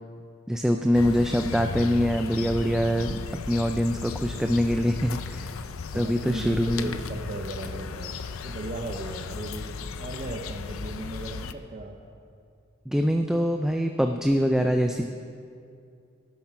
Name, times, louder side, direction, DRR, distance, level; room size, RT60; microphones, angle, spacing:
voice 1, 0.5-5.6 5.9-6.9 12.9-15.1, equal, 5° right, 5 dB, 0.3 m, -24 dB
sound 1, 0.9-11.5, left 5 dB, 90° left, 0.5 m, -36 dB
voice 2, 5.9-9.7 10.0-12.0, right 1 dB, 35° right, 2 dB, 0.7 m, -36 dB
12.0 x 7.3 x 5.8 m, 2.4 s
head